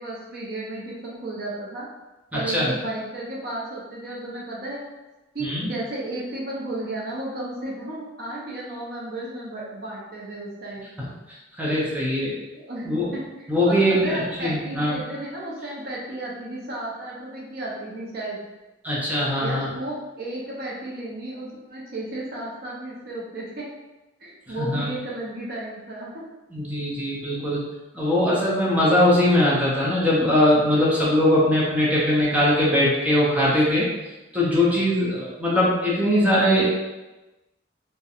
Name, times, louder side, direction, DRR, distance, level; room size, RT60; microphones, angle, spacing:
voice 1, 0.0-1.9 2.3-4.8 5.3-10.9 12.2-12.3 12.6-18.4 19.4-23.7 24.2-26.2, right 1 dB, 55° right, -4 dB, 0.5 m, -33 dB
voice 2, 2.3-2.7 5.4-5.6 11.0-11.1 11.6-12.3 12.9-13.1 13.5-15.0 18.8-19.7 24.6-24.9 26.5-27.6 27.9-33.9 34.3-36.7, left 1 dB, 10° right, -7 dB, 0.5 m, -21 dB
2.7 x 2.1 x 2.4 m, 1.1 s
head